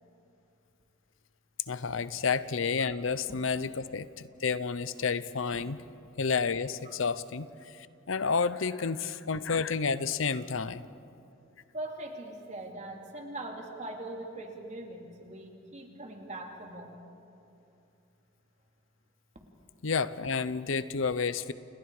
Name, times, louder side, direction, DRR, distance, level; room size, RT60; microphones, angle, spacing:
voice 1, 1.7-5.8 6.2-10.8 19.8-21.5, left 5 dB, 75° left, 15 dB, 0.7 m, -30 dB
voice 2, 11.7-16.9, right 2 dB, 35° right, 2 dB, 3.0 m, -41 dB
30.0 x 29.0 x 5.0 m, 2.6 s
head